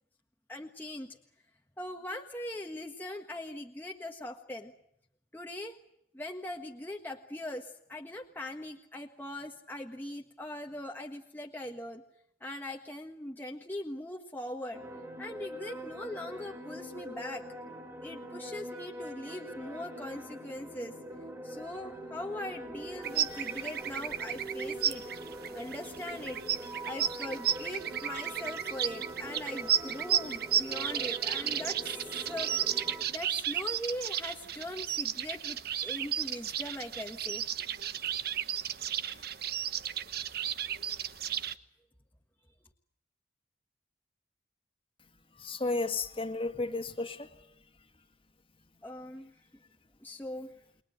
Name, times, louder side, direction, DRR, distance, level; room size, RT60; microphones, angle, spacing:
voice 1, 0.5-1.2 1.8-4.7 5.3-5.8 6.1-12.0 12.4-14.8 15.2-17.5 18.0-21.0 21.4-25.0 25.5-26.4 26.8-31.9 32.2-37.4 39.1-39.4 48.8-49.3 50.0-50.5, left 1 dB, 10° left, 1 dB, 1.5 m, -41 dB
sound 1, 14.7-33.1, right 1 dB, 15° right, 3.9 m, -43 dB
sound 2, 23.0-41.5, right 9 dB, 60° right, 1.1 m, -34 dB
voice 2, 45.3-47.6, left 3 dB, 30° left, 8 dB, 2.0 m, -33 dB
29.5 x 22.0 x 7.9 m, 0.74 s
head